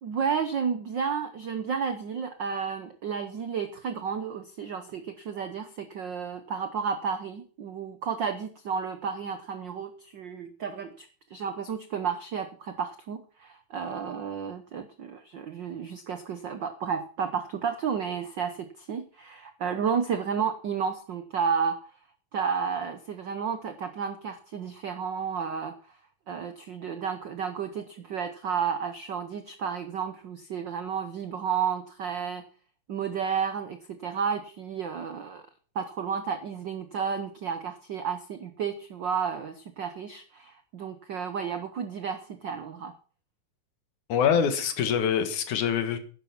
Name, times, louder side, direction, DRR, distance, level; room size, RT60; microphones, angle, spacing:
voice 1, 0.0-21.8 22.3-26.0 26.3-32.4 32.9-35.4 35.7-42.9, right 6 dB, 90° right, 9 dB, 1.0 m, -32 dB
voice 2, 44.1-46.0, left 7 dB, 80° left, 9 dB, 3.0 m, -25 dB
11.0 x 10.5 x 5.9 m, 0.41 s
omnidirectional pair, 3.5 m